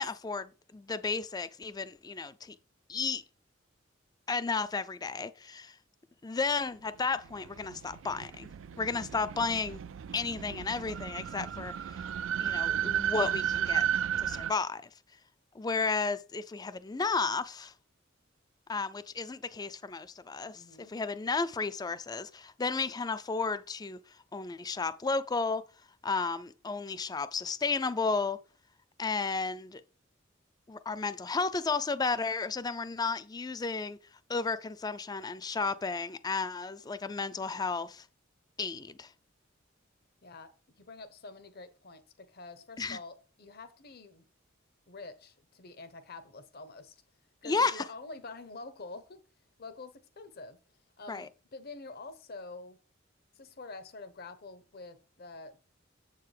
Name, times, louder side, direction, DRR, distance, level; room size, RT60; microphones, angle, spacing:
voice 1, 0.0-2.5 2.9-3.2 4.3-5.8 6.2-9.8 10.1-12.0 12.4-13.9 14.2-14.8 15.5-17.7 18.7-24.0 24.3-25.6 26.0-28.4 29.0-29.8 30.7-34.0 34.3-38.1 38.6-39.1 42.8-43.0 47.4-47.8 51.1-51.3, left 4 dB, 20° left, 0.4 m, -33 dB
sound 1, 7.0-14.5, right 10 dB, 80° right, 0.4 m, -33 dB
voice 2, 8.7-9.1 20.5-20.9 40.2-40.5 40.8-44.2 44.9-47.0 47.4-49.2 49.6-50.6 51.0-52.8 53.3-55.6, left 3 dB, 50° left, 0.9 m, -47 dB
7.4 x 6.7 x 3.3 m
head